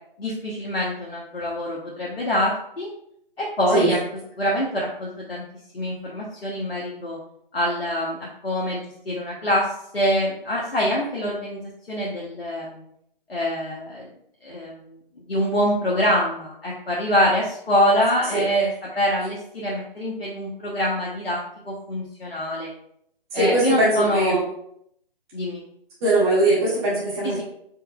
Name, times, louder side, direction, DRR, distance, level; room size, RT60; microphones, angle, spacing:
voice 1, 0.2-2.9 3.4-4.0 4.4-5.4 5.7-7.2 7.5-11.6 11.9-12.8 13.3-14.1 14.4-22.7 23.3-24.4 25.3-25.6 27.2-27.4, equal, 85° left, -4 dB, 0.9 m, -25 dB
voice 2, 23.3-24.4 26.0-27.4, right 2 dB, 25° right, -8 dB, 1.5 m, -20 dB
4.4 x 3.6 x 2.3 m, 0.73 s
figure-of-eight pair, 145°, 29 cm